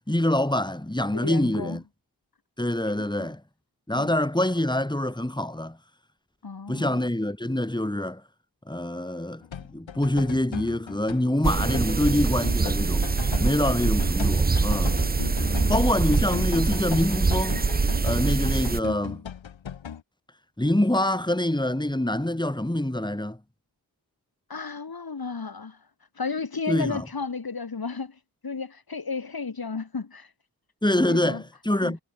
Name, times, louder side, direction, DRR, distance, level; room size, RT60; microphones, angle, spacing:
voice 1, 0.1-1.8 2.6-3.4 3.9-5.8 6.7-8.2 8.7-9.4 9.7-13.1 13.4-15.0 15.7-17.6 18.0-19.2 20.6-23.4 26.7-27.1 30.8-32.0, left 1 dB, 10° left, 5.2 m, -25 dB
voice 2, 1.1-1.8 3.2-3.3 3.9-4.1 6.4-7.0 15.5-16.0 24.5-25.8 26.2-30.3 31.0-31.4 31.8-31.9, left 4 dB, 50° left, 5.8 m, -33 dB
sound 1, 9.4-20.0, left 8 dB, 75° left, 4.2 m, -37 dB
sound 2, 11.4-18.8, right 4 dB, 20° right, 0.8 m, -24 dB
supercardioid pair, 40°, 46 cm